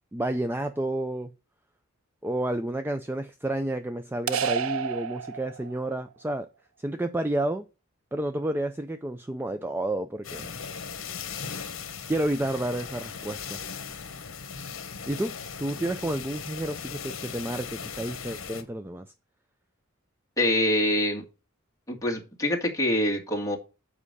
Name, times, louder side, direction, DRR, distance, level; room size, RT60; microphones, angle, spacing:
voice 1, 0.1-1.3 2.2-6.5 6.8-7.6 8.1-10.5 12.1-13.6 15.1-19.1, right 1 dB, 10° right, 0.4 m, -30 dB
sound 1, 4.3-5.9, right 7 dB, 70° right, 0.5 m, -30 dB
sound 2, 10.2-18.6, left 6 dB, 65° left, 1.3 m, -38 dB
voice 2, 20.4-21.2 21.9-23.6, left 1 dB, 15° left, 1.9 m, -25 dB
7.4 x 5.0 x 6.6 m
head